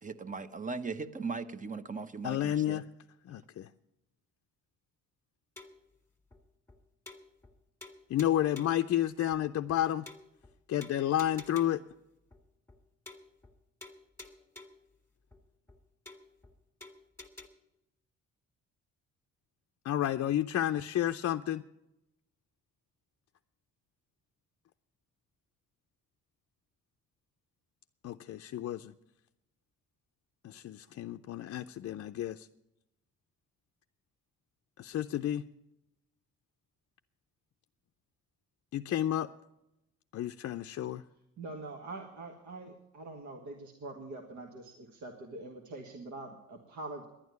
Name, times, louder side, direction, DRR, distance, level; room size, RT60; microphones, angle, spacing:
voice 1, 0.0-2.8, right 4 dB, 25° right, 13 dB, 0.9 m, -38 dB
voice 2, 2.2-2.9 3.3-3.7 8.1-10.1 10.7-11.8 19.8-21.6 28.0-28.9 30.4-32.5 34.8-35.4 38.7-39.3 40.1-41.0, left 12 dB, 55° left, 6 dB, 0.5 m, -31 dB
sound 1, 5.6-5.9 6.3-6.4 6.7-6.8 7.1-7.5 7.8-8.9 9.3-9.4 9.7-9.8 10.1-10.5 10.8-11.9 12.3-12.4 12.7-12.8 13.1-13.5 13.8-14.9 15.3-15.4 15.7-15.8 16.1-16.5 16.8-17.5, left 2 dB, 10° left, 1.9 m, -50 dB
voice 3, 41.4-47.1, right 2 dB, 70° right, 2 dB, 1.7 m, -44 dB
11.5 x 9.4 x 9.4 m, 0.90 s
cardioid pair, 90°, 30 cm